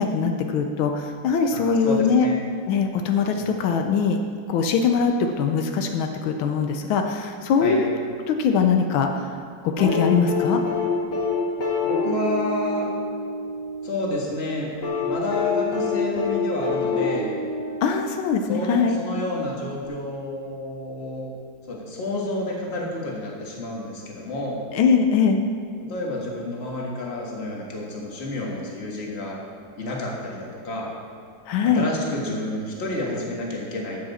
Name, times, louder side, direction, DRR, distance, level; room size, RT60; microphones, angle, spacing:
voice 1, 0.0-2.3 2.7-4.2 4.5-7.9 8.3-9.3 9.6-10.6 17.8-19.0 24.7-25.4 31.5-31.9, left 6 dB, 85° left, 5 dB, 1.5 m, -22 dB
voice 2, 1.5-2.3 3.4-3.5 7.6-7.8 11.8-12.9 13.8-14.7 15.0-17.3 18.5-21.3 21.7-24.6 25.9-29.4 29.8-30.9 31.7-34.0, left 2 dB, 35° left, -2 dB, 1.7 m, -29 dB
sound 1, 9.8-13.9 14.8-18.4 19.8-19.9, left 3 dB, 60° left, 2.2 m, -26 dB
13.0 x 7.8 x 4.2 m, 2.1 s
omnidirectional pair, 2.2 m